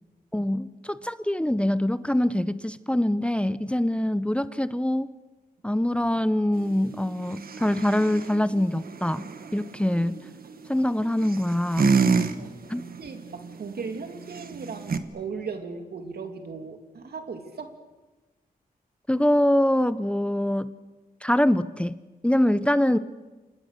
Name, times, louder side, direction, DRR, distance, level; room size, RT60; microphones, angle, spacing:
voice 1, 0.3-5.1 5.6-9.3 9.5-10.2 10.7-11.9 12.7-12.8 19.1-20.7 21.2-22.0 22.2-23.0, left 1 dB, 5° left, 14 dB, 0.8 m, -24 dB
sound 1, 6.5-15.0, right 5 dB, 70° right, 1.5 m, -30 dB
voice 2, 13.0-17.8, right 5 dB, 85° right, 5 dB, 2.8 m, -37 dB
29.0 x 26.0 x 6.8 m, 1.2 s
wide cardioid pair, 90°, 16 cm